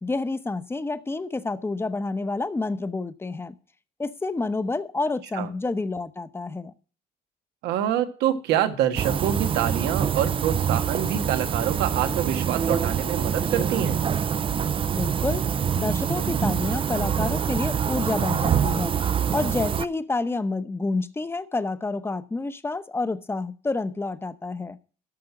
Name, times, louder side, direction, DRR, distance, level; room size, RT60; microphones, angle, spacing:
voice 1, 0.0-3.6 4.0-6.7 14.9-15.5 15.8-19.0 19.3-24.8, left 3 dB, 15° left, 13 dB, 0.8 m, -29 dB
voice 2, 7.6-14.0, right 10 dB, 90° right, 8 dB, 1.5 m, -26 dB
sound 1, 9.0-19.8, right 8 dB, 30° right, 0.5 m, -25 dB
12.5 x 6.0 x 6.0 m, 0.38 s
cardioid pair, 110°, 17 cm